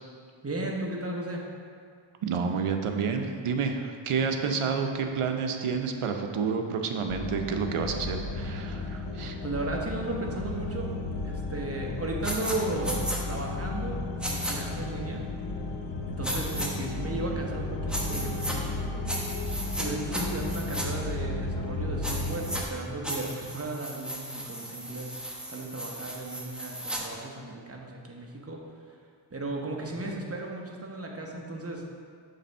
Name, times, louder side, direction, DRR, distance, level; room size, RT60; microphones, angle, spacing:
voice 1, 0.4-1.5 8.9-9.0 9.4-10.9 11.2-15.2 16.1-19.1 19.8-25.2 25.5-29.0 29.3-31.9, right 2 dB, 30° right, 0 dB, 0.9 m, -35 dB
voice 2, 2.2-9.4, right 5 dB, 80° right, 5 dB, 0.7 m, -29 dB
sound 1, 7.1-22.6, left 2 dB, 60° left, 0.7 m, -34 dB
sound 2, 12.2-12.6 12.8-13.2 14.2-14.5 16.2-16.7 17.9-18.6 19.1-19.9 20.1-20.9 22.0-22.6 23.0-27.0, equal, ahead, 0.9 m, -35 dB
6.7 x 3.4 x 5.4 m, 2.1 s
wide cardioid pair, 80°, 50 cm